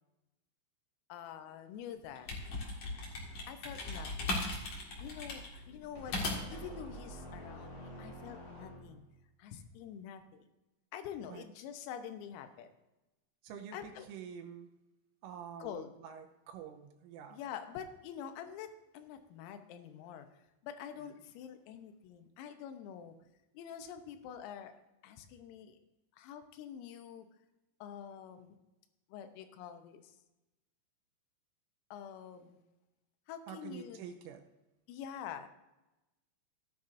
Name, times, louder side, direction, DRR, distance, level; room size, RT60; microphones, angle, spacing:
voice 1, 1.1-2.3 3.5-4.5 5.0-9.0 9.4-10.5 10.9-12.7 13.7-14.1 15.6-15.9 17.3-23.2 23.6-24.7 25.0-25.8 26.1-27.3 27.8-28.6 29.1-30.2 31.9-32.6 33.3-34.2 34.9-35.5, left 8 dB, 85° left, 8 dB, 3.6 m, -46 dB
sound 1, 2.0-6.7, left 2 dB, 60° left, 1.8 m, -38 dB
sound 2, 5.9-9.1, right 1 dB, 25° left, 3.4 m, -48 dB
voice 2, 13.4-14.7 15.2-17.4 33.5-34.5, right 8 dB, 80° right, 5 dB, 3.2 m, -47 dB
15.0 x 10.5 x 2.6 m, 0.99 s
omnidirectional pair, 6.0 m